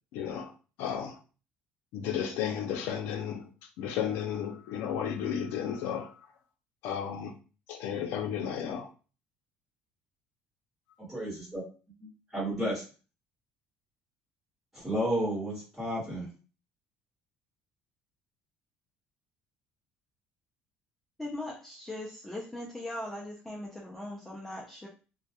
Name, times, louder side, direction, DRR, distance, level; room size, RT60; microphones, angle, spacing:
voice 1, 0.1-0.5 0.8-1.2 1.9-3.5 3.8-6.1 6.8-7.3 7.7-8.9, left 8 dB, 75° left, 0.5 m, -33 dB
voice 2, 11.1-11.6 12.0-12.8 14.7-16.3, right 1 dB, 10° right, 1.1 m, -32 dB
voice 3, 21.2-24.9, left 1 dB, 5° left, 0.3 m, -39 dB
2.1 x 2.1 x 2.7 m
cardioid pair, 160°, 4 cm